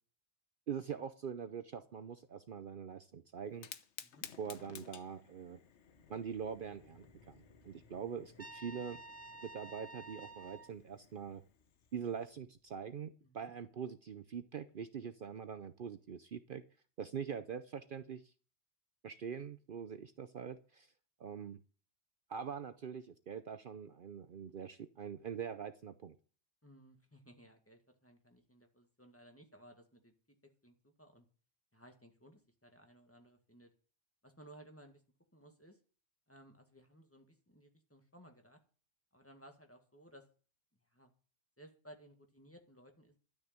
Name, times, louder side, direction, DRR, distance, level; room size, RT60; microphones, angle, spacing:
voice 1, 0.7-3.7 4.4-5.6 6.1-9.0 9.4-11.4 11.9-16.6 17.0-18.3 19.0-20.9 21.2-21.6 22.3-26.1, right 7 dB, 55° right, 10 dB, 0.8 m, -43 dB
Fire, 3.5-12.3, left 8 dB, 90° left, 1.2 m, -56 dB
sound 1, 5.6-12.7, left 3 dB, 40° left, 2.5 m, -68 dB
Trumpet, 8.4-10.7, right 2 dB, 15° right, 1.2 m, -51 dB
voice 2, 13.2-13.5 26.6-30.1 30.4-31.3 31.7-33.7 34.2-35.0 35.3-35.8 36.3-38.6 39.1-40.3 40.7-41.1 41.6-43.2, right 1 dB, 10° left, 4 dB, 1.8 m, -59 dB
12.5 x 6.6 x 8.7 m, 0.40 s
omnidirectional pair, 1.1 m